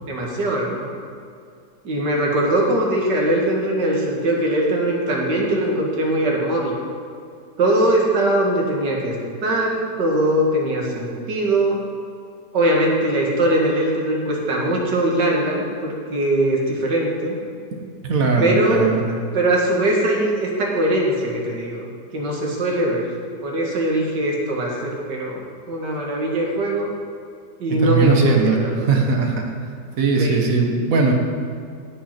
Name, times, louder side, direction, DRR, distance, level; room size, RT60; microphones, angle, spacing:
voice 1, 0.1-1.0 1.8-6.7 7.6-9.2 9.4-11.8 12.5-17.4 18.4-18.9 19.3-25.4 25.7-26.9 27.6-28.9 30.2-30.4, right 1 dB, 70° right, -2 dB, 2.3 m, -21 dB
voice 2, 18.0-19.1 27.8-29.4 30.0-31.1, right 4 dB, 55° right, 2 dB, 1.5 m, -19 dB
16.0 x 5.6 x 4.4 m, 2.3 s
omnidirectional pair, 1.9 m